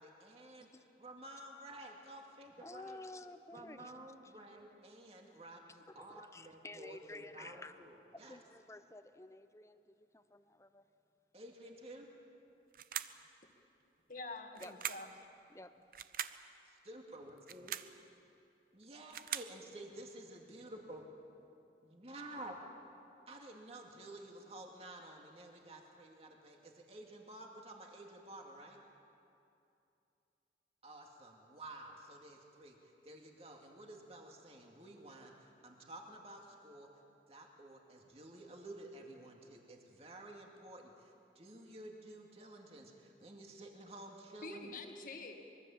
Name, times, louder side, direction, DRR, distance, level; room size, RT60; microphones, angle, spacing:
voice 1, 0.0-3.0 3.5-8.4 11.3-12.1 16.6-17.7 18.7-21.0 21.8-22.6 23.3-28.8 30.8-36.9 37.3-44.7, right 1 dB, 35° right, 1 dB, 2.4 m, -52 dB
voice 2, 2.6-3.9 5.9-7.7 8.3-10.8 14.6-14.7 15.5-15.7, left 2 dB, 15° left, 10 dB, 0.8 m, -52 dB
sound 1, 12.7-13.3 14.6-15.2 15.9-16.4 17.4-18.0 18.8-19.6, right 10 dB, 50° right, 0.7 m, -42 dB
voice 3, 14.1-15.1 44.4-45.4, left 3 dB, 50° left, 4 dB, 2.0 m, -46 dB
24.5 x 22.5 x 7.3 m, 2.7 s
head